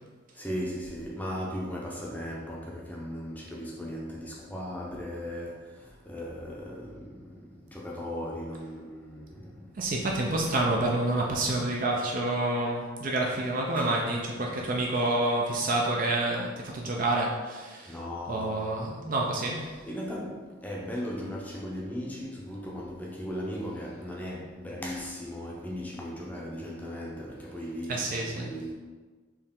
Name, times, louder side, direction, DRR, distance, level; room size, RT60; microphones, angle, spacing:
voice 1, 0.3-9.8 13.8-13.9 17.8-19.0 19.5-28.7, equal, 10° left, 0.6 m, -37 dB
voice 2, 9.8-18.0 18.3-19.8 27.9-28.5, right 2 dB, 45° right, 0.4 m, -28 dB
4.5 x 3.1 x 3.6 m
head